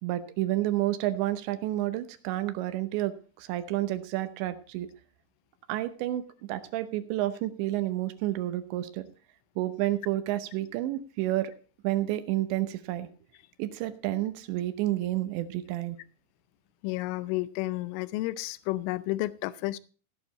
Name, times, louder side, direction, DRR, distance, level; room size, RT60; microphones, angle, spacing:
voice 1, 0.0-4.9 5.7-6.2 6.5-9.1 9.6-11.5 11.8-13.1 13.6-16.0, right 15 dB, 75° right, 2.9 m, -30 dB
voice 2, 16.8-19.8, left 18 dB, 85° left, 3.1 m, -31 dB
15.5 x 9.2 x 4.1 m
omnidirectional pair, 5.7 m